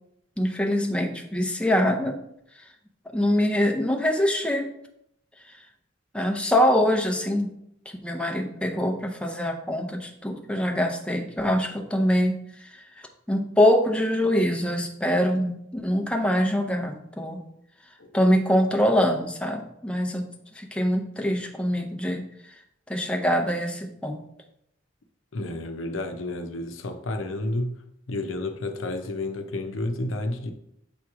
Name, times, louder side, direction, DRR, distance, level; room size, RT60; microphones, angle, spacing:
voice 1, 0.4-2.2 3.1-4.7 6.1-7.5 7.9-12.8 13.3-17.4 18.1-20.3 20.6-22.2 22.9-24.2, equal, 5° left, 0.6 m, -24 dB
voice 2, 25.3-27.7 28.1-30.5, left 2 dB, 85° left, 0.7 m, -30 dB
7.0 x 3.0 x 4.7 m
head